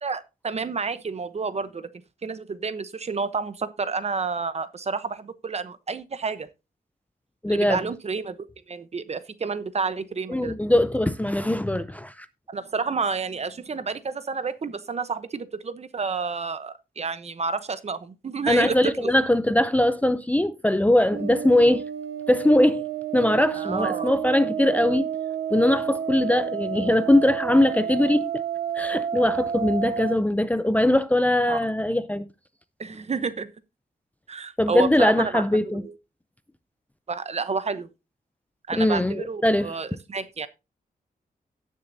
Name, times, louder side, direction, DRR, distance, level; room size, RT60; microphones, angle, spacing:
voice 1, 0.0-1.9 2.2-6.5 7.5-10.6 12.5-19.1 23.5-24.1 26.3-26.4 31.5-31.6 32.8-33.5 34.3-35.4 35.7-35.9 37.1-37.9 38.7-40.5, right 5 dB, 40° right, 0.9 m, -30 dB
voice 2, 7.4-7.8 10.3-12.3 18.5-21.8 22.3-22.9 23.1-25.1 25.5-28.3 28.7-32.3 34.6-35.8 38.7-39.7, left 1 dB, 10° left, 0.5 m, -21 dB
sound 1, 21.1-30.2, right 8 dB, 75° right, 0.8 m, -30 dB
17.0 x 6.5 x 2.7 m
wide cardioid pair, 115°, 16 cm